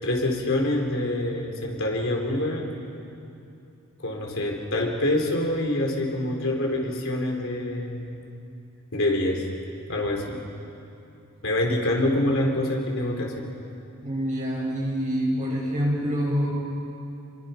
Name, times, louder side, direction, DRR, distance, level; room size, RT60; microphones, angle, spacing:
voice 1, 0.0-2.7 4.0-8.2 8.9-9.4 9.9-10.4 11.4-13.3, left 1 dB, 65° left, 0 dB, 3.9 m, -26 dB
voice 2, 14.0-16.5, equal, 35° right, -3 dB, 6.9 m, -26 dB
29.0 x 24.0 x 5.8 m, 2.7 s
head